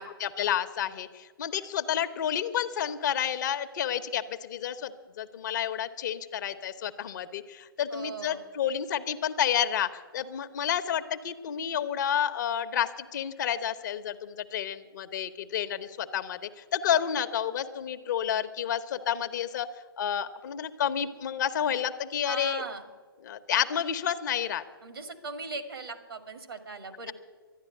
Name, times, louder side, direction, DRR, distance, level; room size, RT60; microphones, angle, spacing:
voice 1, 0.0-19.7 20.0-22.6 23.2-24.6, left 9 dB, 50° left, 9 dB, 1.0 m, -30 dB
voice 2, 7.9-8.4 22.2-22.8 24.8-27.1, right 3 dB, 75° right, 7 dB, 1.9 m, -39 dB
12.0 x 10.5 x 9.7 m, 1.5 s
figure-of-eight pair, 120°, 12 cm